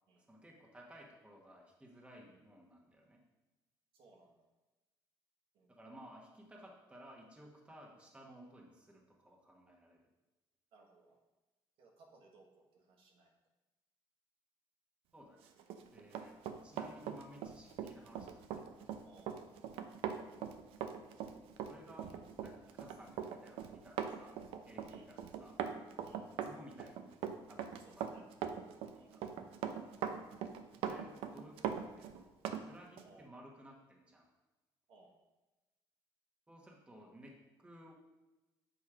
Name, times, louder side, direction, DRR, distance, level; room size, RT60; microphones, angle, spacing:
voice 1, 0.3-3.2 5.7-10.0 15.1-15.5 15.9-16.4 16.6-18.9 20.2-20.6 21.7-25.6 26.4-27.2 27.5-28.1 28.8-29.2 30.8-34.3 36.5-37.9, equal, 10° right, -2 dB, 1.3 m, -57 dB
voice 2, 3.9-4.5 5.5-5.7 7.8-7.9 10.7-11.2 11.8-13.3 19.0-19.3 24.9-25.1 26.0-26.2 27.8-28.2 29.0-29.2 33.0-33.3 34.9-35.1, right 3 dB, 70° right, 0 dB, 1.4 m, -64 dB
Run, 15.6-32.6 33.0-33.1, right 8 dB, 90° right, 0.6 m, -41 dB
7.5 x 4.2 x 4.9 m, 1.1 s
cardioid pair, 125°, 9 cm